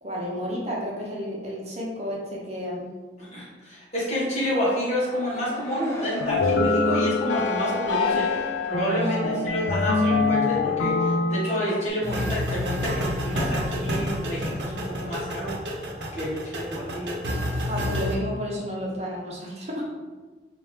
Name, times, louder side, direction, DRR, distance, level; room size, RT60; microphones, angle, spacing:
voice 1, 0.0-2.9 9.0-9.5 17.7-19.9, equal, 35° right, -4 dB, 0.7 m, -31 dB
voice 2, 3.2-17.1, equal, 40° left, -7 dB, 1.4 m, -29 dB
sound 1, 4.9-7.6 8.0-8.2, right 1 dB, 15° left, 0.7 m, -38 dB
sound 2, 6.2-11.9, left 3 dB, 85° left, 0.4 m, -24 dB
sound 3, 12.0-18.1, left 1 dB, 75° right, 0.7 m, -29 dB
4.2 x 2.5 x 3.3 m, 1.3 s
head